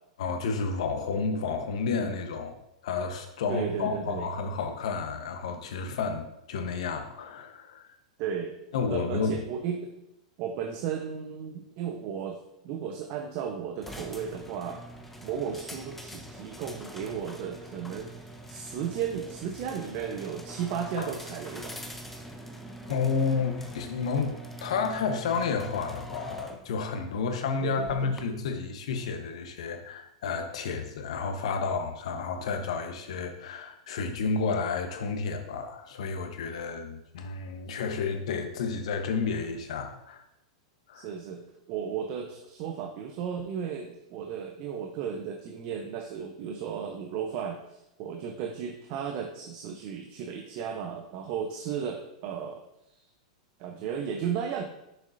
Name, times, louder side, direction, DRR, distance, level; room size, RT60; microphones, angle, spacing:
voice 1, 0.2-2.5 2.8-7.9 8.7-9.4 21.0-21.1 22.9-40.2 40.9-41.1, left 5 dB, 70° left, 5 dB, 1.0 m, -31 dB
voice 2, 3.5-4.3 8.2-8.5 8.9-9.9 10.4-14.8 15.2-21.8 27.6-28.1 40.9-52.6 52.9-53.0 53.6-54.6, right 7 dB, 50° right, 4 dB, 0.7 m, -34 dB
sound 1, 13.8-28.2, equal, 5° left, 0.8 m, -44 dB
6.6 x 6.3 x 2.6 m, 0.85 s
hypercardioid pair, 110°, 3 cm